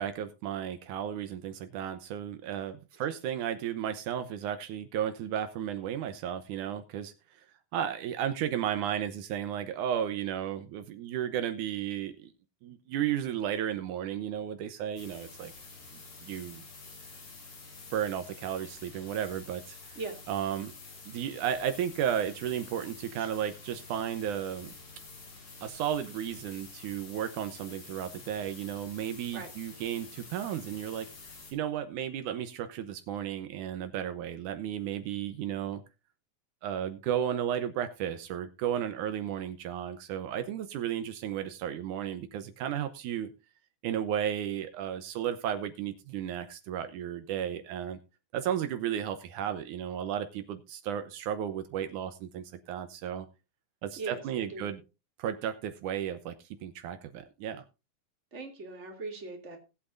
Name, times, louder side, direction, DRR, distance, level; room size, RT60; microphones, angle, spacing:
voice 1, 0.0-7.1 7.7-12.3 12.6-15.5 16.2-16.6 17.9-19.8 20.3-20.7 21.1-24.7 25.6-31.1 31.5-35.8 36.6-43.3 43.8-48.0 48.3-53.3 53.8-54.8 55.2-56.4 56.6-57.6, right 9 dB, 80° right, 9 dB, 2.3 m, -34 dB
sound 1, 15.0-31.5, left 3 dB, 65° left, 5.4 m, -49 dB
voice 2, 53.9-54.7 58.3-59.6, right 3 dB, 25° right, 2 dB, 2.6 m, -40 dB
19.0 x 8.4 x 2.6 m, 0.28 s
omnidirectional pair, 3.6 m